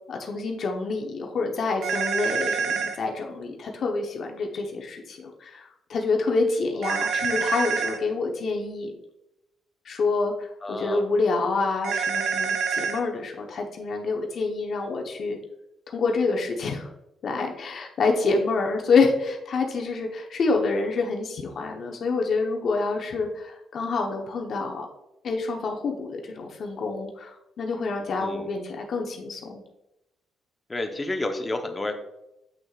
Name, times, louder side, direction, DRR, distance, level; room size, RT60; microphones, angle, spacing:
voice 1, 0.1-8.9 9.8-15.4 15.9-16.9 17.2-24.9 25.2-29.6, left 4 dB, 55° left, 2 dB, 0.9 m, -27 dB
sound 1, 1.8-3.0 6.8-8.0 11.8-13.0, right 6 dB, 80° right, 0.8 m, -26 dB
voice 2, 10.6-11.0 28.2-28.5 30.7-31.9, left 2 dB, 20° left, 5 dB, 0.9 m, -30 dB
7.5 x 6.2 x 2.4 m, 0.89 s
cardioid pair, 90°, 0 cm